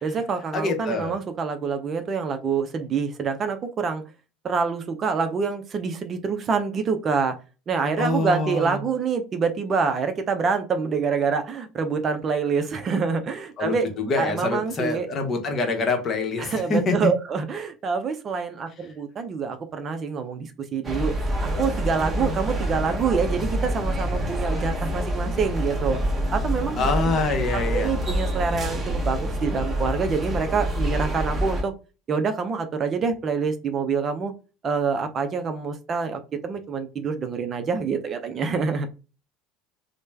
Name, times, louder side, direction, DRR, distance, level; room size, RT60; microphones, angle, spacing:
voice 1, 0.0-4.0 4.4-7.4 7.7-13.9 14.2-15.1 16.4-21.1 21.4-26.0 26.3-26.9 27.5-31.7 32.1-34.3 34.6-38.9, right 5 dB, 35° right, 0.5 m, -26 dB
voice 2, 0.5-1.1 8.0-8.8 13.6-17.1 26.8-27.9, left 3 dB, 35° left, 0.9 m, -25 dB
sound 1, 20.8-31.6, equal, 20° right, 1.1 m, -27 dB
3.1 x 2.1 x 3.2 m
figure-of-eight pair, 70°, 0 cm